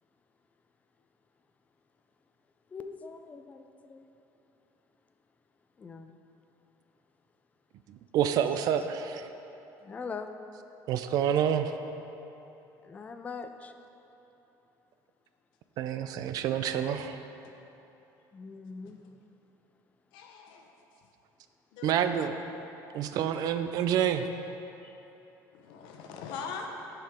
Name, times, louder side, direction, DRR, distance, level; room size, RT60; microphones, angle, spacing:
voice 1, 2.7-4.1 5.8-6.1 9.8-10.3 12.8-13.7 18.3-19.0 24.8-25.0, left 5 dB, 20° left, 7 dB, 0.3 m, -42 dB
voice 2, 8.1-9.3 10.9-11.7 15.8-17.2 21.8-22.4 22.9-24.3, right 9 dB, 55° right, 9 dB, 0.4 m, -28 dB
voice 3, 20.1-20.7 21.7-22.1 25.5-26.7, left 6 dB, 85° left, 3 dB, 0.8 m, -42 dB
10.5 x 4.6 x 3.6 m, 3.0 s
cardioid pair, 140°, 8 cm